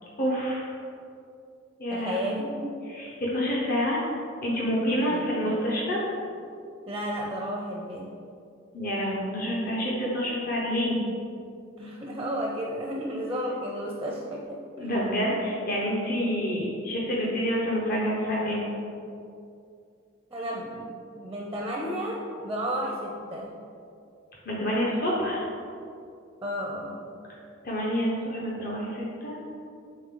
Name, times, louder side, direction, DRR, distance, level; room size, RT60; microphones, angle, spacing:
voice 1, 0.2-0.7 1.8-2.4 2.9-4.0 4.4-6.1 8.7-11.0 14.8-18.7 24.4-25.5 27.6-29.4, equal, 45° left, -5 dB, 0.9 m, -28 dB
voice 2, 1.9-2.9 5.1-5.3 6.9-8.1 11.8-14.9 20.3-23.5 26.4-27.0, equal, 15° right, -2 dB, 0.5 m, -33 dB
7.7 x 3.7 x 3.7 m, 2.5 s
head